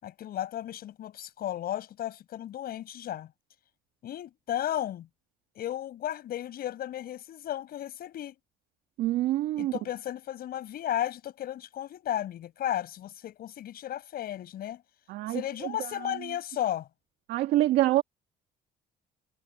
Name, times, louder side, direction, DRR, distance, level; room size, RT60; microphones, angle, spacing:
voice 1, 0.0-3.3 4.0-5.1 5.5-8.3 9.6-14.8 15.3-16.9, left 12 dB, 65° left, 7.6 m, -34 dB
voice 2, 9.0-9.7 15.1-16.1 17.3-18.0, right 15 dB, 85° right, 1.8 m, -26 dB
cardioid pair, 110°, 17 cm